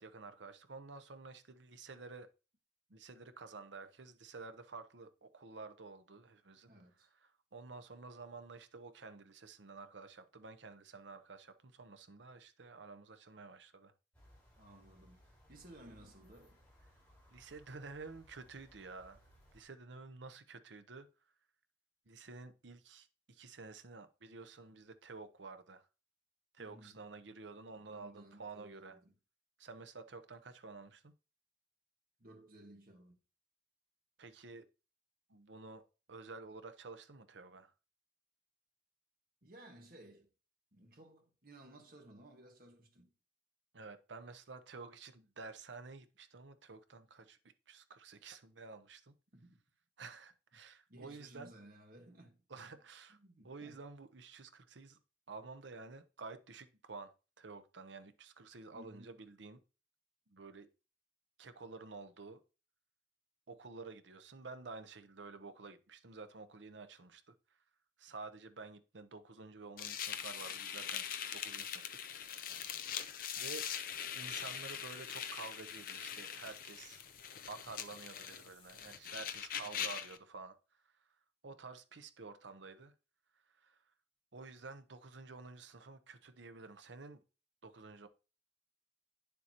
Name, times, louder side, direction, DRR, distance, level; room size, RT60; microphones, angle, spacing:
voice 1, 0.0-2.3 2.9-6.7 7.2-13.9 17.3-19.2 19.5-21.1 22.1-25.9 26.5-29.0 29.6-31.1 34.2-34.7 35.3-37.7 43.7-47.4 47.7-49.1 50.0-51.5 52.5-53.2 53.4-55.0 55.3-57.1 57.4-59.6 60.3-60.7 61.4-62.4 63.5-67.6 68.0-71.0 71.3-71.8 73.4-73.7 74.1-77.0 77.5-80.6 81.4-82.9 83.6-83.8 84.3-87.2 87.6-88.1, right 4 dB, 80° right, 0.8 m, -51 dB
voice 2, 6.7-7.1 14.6-16.6 26.6-27.0 27.8-29.1 32.2-33.2 39.4-40.3 40.7-43.1 49.3-49.6 50.9-52.4 53.1-53.8 58.7-59.2 79.6-79.9, right 1 dB, 50° right, 1.6 m, -58 dB
sound 1, 14.1-19.6, equal, 10° left, 3.8 m, -64 dB
sound 2, 69.8-80.2, left 9 dB, 50° left, 0.5 m, -42 dB
Water tap faucet, 73.3-78.9, left 5 dB, 35° left, 2.3 m, -63 dB
9.7 x 6.9 x 2.9 m
head